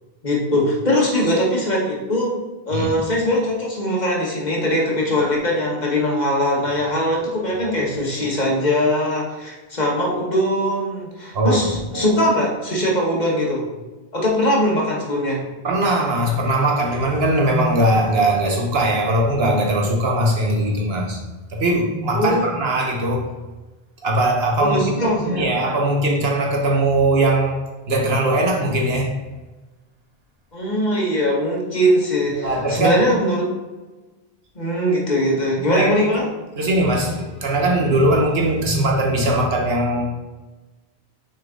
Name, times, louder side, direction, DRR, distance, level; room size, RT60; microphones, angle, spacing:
voice 1, 0.2-2.4 2.7-13.7 14.1-15.4 22.1-22.5 24.6-25.5 30.5-33.5 34.5-36.2, equal, 45° left, -2 dB, 1.5 m, -21 dB
voice 2, 11.3-11.7 11.9-12.1 15.6-21.2 21.5-23.3 24.0-27.6 27.9-29.2 32.4-33.0 35.7-35.9 36.6-40.0, right 1 dB, 70° right, 1 dB, 1.3 m, -20 dB
6.4 x 4.4 x 3.7 m, 1.2 s
omnidirectional pair, 1.1 m